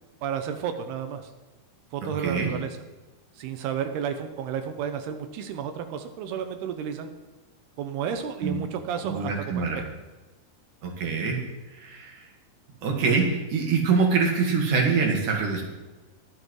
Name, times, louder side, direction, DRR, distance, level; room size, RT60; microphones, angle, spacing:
voice 1, 0.2-1.3 1.9-2.8 3.3-7.1 7.8-9.8, right 8 dB, 90° right, 7 dB, 2.8 m, -32 dB
voice 2, 2.0-2.5 8.4-8.6 9.0-9.8 10.8-11.4 11.7-12.2 12.8-15.6, right 5 dB, 60° right, 1 dB, 3.0 m, -25 dB
22.0 x 7.7 x 3.2 m, 1.2 s
omnidirectional pair, 4.6 m